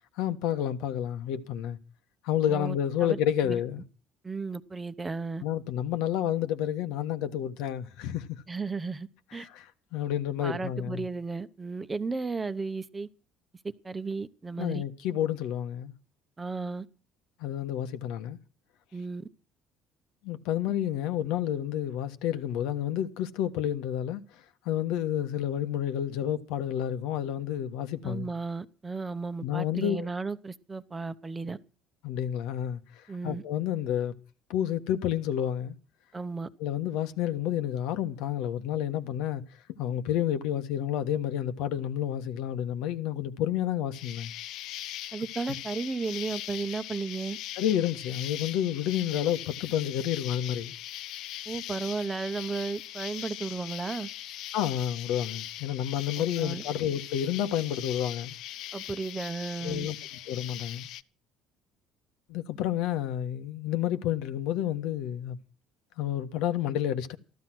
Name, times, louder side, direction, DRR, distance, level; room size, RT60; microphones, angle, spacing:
voice 1, 0.2-1.8 2.2-3.8 5.4-8.4 9.4-11.1 14.6-15.9 17.4-18.4 20.2-24.2 24.6-28.3 29.4-30.1 32.0-34.1 34.5-35.7 36.6-39.4 39.8-44.3 45.5-45.6 47.6-50.7 54.5-58.3 59.6-59.9 60.3-60.9 62.3-65.4 66.0-67.2, left 10 dB, 85° left, 1.5 m, -30 dB
voice 2, 2.5-3.2 3.4-3.6 4.2-5.4 8.5-9.5 10.4-13.1 13.6-14.8 16.4-16.9 18.9-19.2 28.0-31.6 33.1-33.4 36.1-36.5 45.1-47.4 51.5-54.1 56.4-56.6 58.7-59.9, right 4 dB, 15° right, 0.9 m, -34 dB
Insect, 43.9-61.0, left 13 dB, 70° left, 0.7 m, -40 dB
15.0 x 12.0 x 6.1 m
cardioid pair, 140°, 0 cm